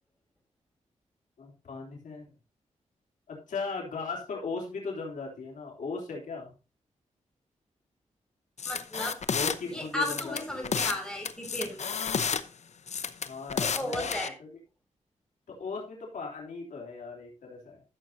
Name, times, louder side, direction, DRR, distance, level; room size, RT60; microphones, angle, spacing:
voice 1, 1.4-2.3 3.3-6.6 9.3-10.8 13.2-14.1 14.4-14.5 15.6-17.8, left 4 dB, 90° left, -1 dB, 3.2 m, -37 dB
sound 1, 8.6-9.6 10.0-11.0 11.3-12.4 12.9-14.3, left 6 dB, 65° left, 0.8 m, -31 dB
voice 2, 8.7-9.2 9.6-11.9 13.6-14.3, left 1 dB, 5° left, 1 dB, 5.7 m, -34 dB
14.0 x 7.3 x 2.7 m, 0.33 s
cardioid pair, 75°, 13 cm